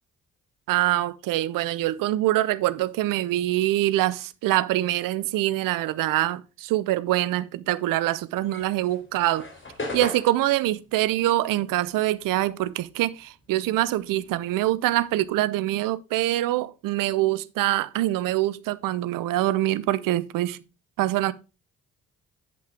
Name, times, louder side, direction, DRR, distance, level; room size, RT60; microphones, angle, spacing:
voice 1, 0.7-9.5 9.9-20.6 21.0-21.3, right 15 dB, 60° right, 0.7 m, -24 dB
sound 1, 8.4-13.1 13.4-15.4, left 2 dB, 30° left, 3.5 m, -38 dB
8.5 x 7.7 x 3.5 m
figure-of-eight pair, 40°, 38 cm